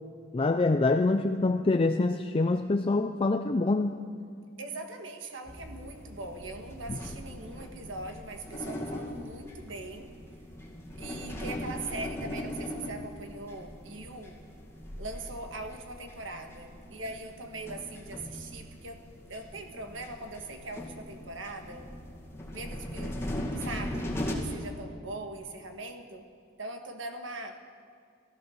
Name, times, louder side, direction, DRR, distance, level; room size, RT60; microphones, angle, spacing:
voice 1, 0.3-4.0, left 3 dB, 30° left, 7 dB, 0.4 m, -25 dB
voice 2, 4.6-10.1 11.0-14.4 15.0-19.0 19.3-21.9 22.5-23.2 23.6-26.2 26.6-27.6, right 2 dB, 80° right, 5 dB, 1.6 m, -41 dB
sound 1, 5.5-24.3, left 1 dB, 15° left, 2.0 m, -40 dB
16.0 x 14.0 x 6.4 m, 2.1 s
head